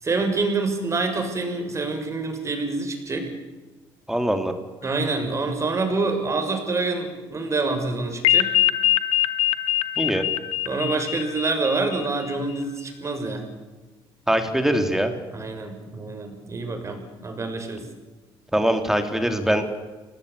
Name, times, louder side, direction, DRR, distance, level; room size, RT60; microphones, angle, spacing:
voice 1, 0.0-3.3 4.8-8.6 10.7-13.5 15.3-17.9, right 3 dB, 30° right, 5 dB, 6.8 m, -26 dB
voice 2, 4.1-4.5 10.0-10.2 14.3-15.1 18.5-19.7, right 1 dB, 5° right, 7 dB, 3.4 m, -22 dB
sound 1, 8.2-12.3, left 13 dB, 80° left, 1.5 m, -23 dB
27.5 x 19.0 x 8.7 m, 1.3 s
cardioid pair, 105°, 10 cm